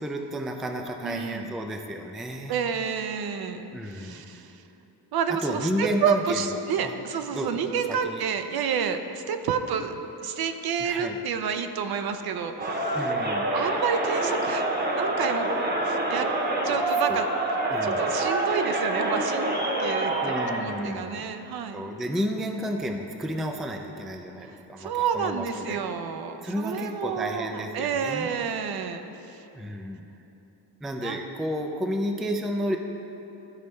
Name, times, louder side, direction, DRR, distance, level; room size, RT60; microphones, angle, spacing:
voice 1, 0.0-2.6 3.7-4.3 5.3-7.0 7.3-8.2 10.8-11.2 12.9-13.5 17.1-17.2 17.7-18.1 20.2-21.3 21.7-25.8 26.4-28.3 29.5-30.1 30.8-32.8, equal, ahead, 3 dB, 0.3 m, -32 dB
voice 2, 1.0-1.5 2.5-4.6 5.1-13.0 13.5-14.7 14.9-15.5 15.8-16.3 16.6-17.3 17.8-19.5 19.8-20.1 20.5-21.8 24.5-29.5 31.0-31.2, right 6 dB, 55° right, 8 dB, 0.6 m, -29 dB
Crowd, 12.6-20.7, right 2 dB, 20° right, 0.9 m, -26 dB
12.0 x 4.1 x 3.2 m, 3.0 s
cardioid pair, 85°, 44 cm